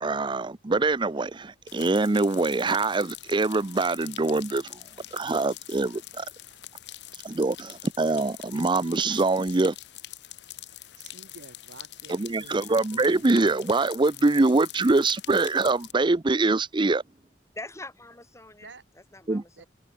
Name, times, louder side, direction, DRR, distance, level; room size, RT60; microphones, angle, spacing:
voice 1, 0.0-4.8 5.1-6.3 7.2-9.7 12.1-17.0 19.3-19.4, right 3 dB, 25° right, 0.6 m, -24 dB
sound 1, 1.7-15.9, left 14 dB, 70° left, 1.2 m, -44 dB
voice 2, 11.0-12.6 12.9-13.6 18.6-18.8 19.6-19.7, right 3 dB, 85° right, 2.1 m, -49 dB
voice 3, 17.5-19.7, left 2 dB, 15° left, 3.8 m, -43 dB
open air
head